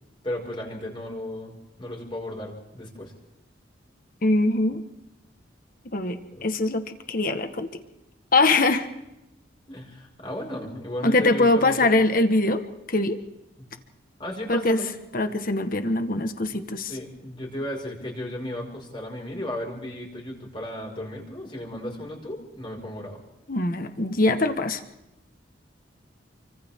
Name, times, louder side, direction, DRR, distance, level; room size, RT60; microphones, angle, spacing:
voice 1, 0.2-3.1 6.3-6.4 9.7-11.7 14.2-14.9 16.5-16.6 16.9-23.2, left 1 dB, 25° left, -1 dB, 5.6 m, -34 dB
voice 2, 4.2-4.8 5.9-6.8 7.1-7.7 8.3-8.9 11.0-12.6 12.9-13.2 14.5-14.8 15.1-16.9 23.5-24.8, left 2 dB, 45° left, 8 dB, 1.5 m, -22 dB
30.0 x 24.5 x 3.8 m, 0.90 s
head